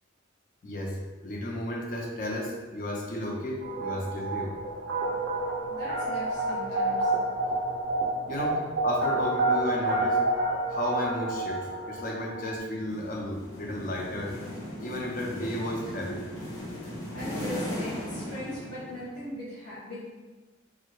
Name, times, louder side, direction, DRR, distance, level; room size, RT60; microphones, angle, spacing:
voice 1, 0.6-4.6 8.3-10.2 10.7-14.4 14.8-16.3, left 1 dB, 45° left, -1 dB, 0.5 m, -33 dB
sound 1, 3.6-12.6, right 2 dB, 55° right, 0.3 m, -29 dB
voice 2, 5.7-7.1 17.1-20.0, left 1 dB, 65° left, -12 dB, 1.3 m, -39 dB
sound 2, 12.8-19.3, equal, 80° left, 1.0 m, -38 dB
3.6 x 2.0 x 2.9 m, 1.2 s
head